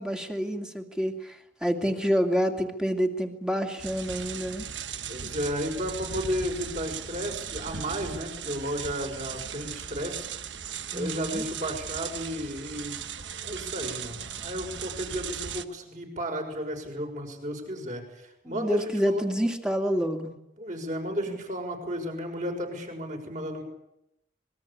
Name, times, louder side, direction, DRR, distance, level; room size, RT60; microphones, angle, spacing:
voice 1, 0.0-4.7 10.9-11.4 18.4-20.3 21.3-21.4, equal, 5° right, 4 dB, 2.4 m, -28 dB
sound 1, 3.8-15.6, right 7 dB, 75° right, 1.3 m, -37 dB
voice 2, 5.1-10.3 10.9-13.0 13.4-18.8 19.1-19.3 20.6-23.6, equal, 40° right, 3 dB, 6.3 m, -33 dB
26.5 x 22.0 x 8.6 m, 0.84 s
head